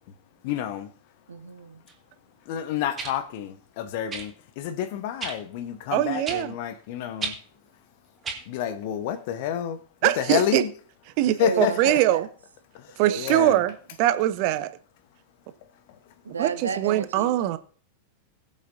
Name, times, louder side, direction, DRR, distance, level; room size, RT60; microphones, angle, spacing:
voice 1, 0.4-0.9 2.5-7.3 8.5-10.7 11.4-11.7 12.7-13.6, left 10 dB, 50° left, 1.1 m, -29 dB
voice 2, 1.3-1.8 11.4-12.2 13.0-13.5 16.2-17.4, right 4 dB, 70° right, 1.2 m, -32 dB
sound 1, 1.9-2.0 3.0-3.1 4.1-4.3 5.2-5.4 6.2-6.4 7.2-7.4 8.2-8.4 9.4-9.5, right 5 dB, 20° right, 2.0 m, -32 dB
voice 3, 5.9-6.5 10.0-10.6 11.2-12.3 13.0-13.7 14.0-14.7 16.4-17.6, right 14 dB, 45° right, 0.8 m, -22 dB
21.0 x 7.3 x 2.7 m
figure-of-eight pair, 90°, 0 cm